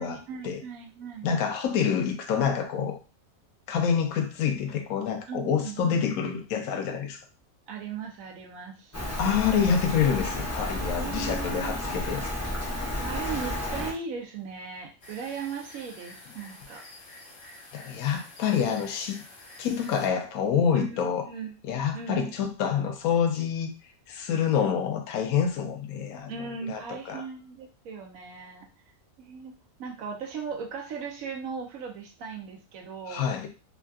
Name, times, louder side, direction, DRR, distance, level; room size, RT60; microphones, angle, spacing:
voice 1, 0.0-1.3 5.3-6.2 7.7-9.0 11.0-11.9 13.0-16.8 17.9-18.2 20.7-21.0 21.3-21.5 21.9-22.3 26.3-28.7 29.2-29.5 29.8-33.2, right 6 dB, 80° right, 1.1 m, -38 dB
voice 2, 1.2-3.0 3.7-7.2 9.2-12.2 17.7-19.2 19.6-21.3 21.6-23.7 24.1-27.2 33.1-33.5, left 7 dB, 85° left, 1.0 m, -27 dB
Rain, 8.9-13.9, left 1 dB, 25° left, 0.4 m, -32 dB
sound 1, 15.0-20.1, left 2 dB, 65° left, 1.2 m, -48 dB
3.5 x 2.3 x 2.3 m
omnidirectional pair, 1.5 m